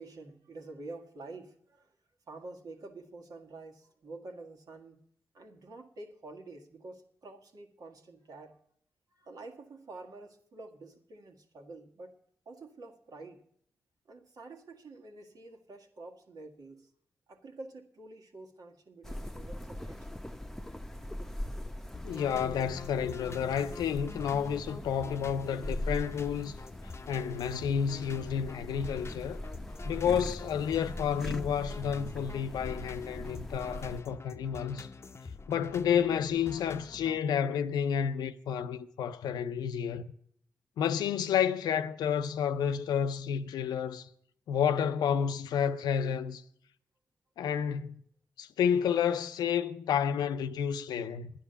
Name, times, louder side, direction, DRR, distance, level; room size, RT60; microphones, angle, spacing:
voice 1, 0.0-2.0 2.3-5.0 5.3-8.6 9.1-12.2 12.5-13.4 14.1-16.9 17.3-20.2, right 2 dB, 65° right, 1.9 m, -48 dB
sound 1, 19.0-34.0, left 1 dB, 5° left, 0.9 m, -41 dB
sound 2, 21.9-37.2, left 3 dB, 40° left, 0.7 m, -46 dB
voice 2, 22.0-26.5 27.1-29.4 29.8-34.9 35.5-40.1 40.8-44.1 44.5-46.4 47.4-47.9 48.4-51.3, left 8 dB, 85° left, 0.6 m, -30 dB
11.0 x 10.0 x 6.8 m
supercardioid pair, 40°, 7 cm